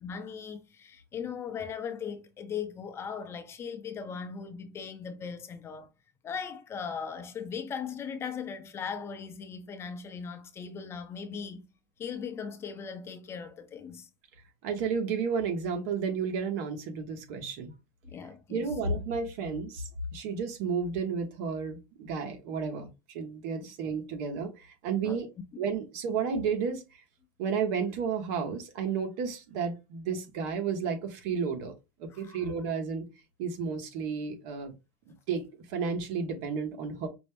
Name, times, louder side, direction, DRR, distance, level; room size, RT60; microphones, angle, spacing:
voice 1, 0.0-5.9 6.2-11.6 12.0-14.1 18.0-18.7 23.6-23.7 25.0-25.2 32.1-32.5, left 6 dB, 30° left, 0.7 m, -38 dB
voice 2, 14.6-17.8 18.5-25.3 25.6-26.8 27.4-31.7 32.0-33.1 33.4-34.7 35.3-37.1, right 5 dB, 70° right, 1.2 m, -32 dB
5.1 x 2.2 x 3.4 m
supercardioid pair, 130°, 9 cm